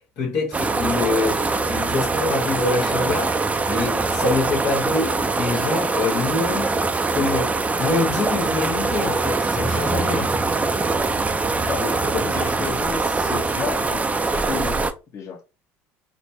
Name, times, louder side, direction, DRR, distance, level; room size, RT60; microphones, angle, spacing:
voice 1, 0.2-1.4 1.7-3.4 3.7-6.7 7.1-10.3, left 3 dB, 65° left, 1.4 m, -25 dB
sound 1, 0.5-14.9, right 3 dB, 20° right, 0.6 m, -23 dB
voice 2, 11.5-14.8 15.1-15.4, left 6 dB, 45° left, 1.3 m, -32 dB
4.3 x 2.2 x 2.7 m
hypercardioid pair, 75°, 7 cm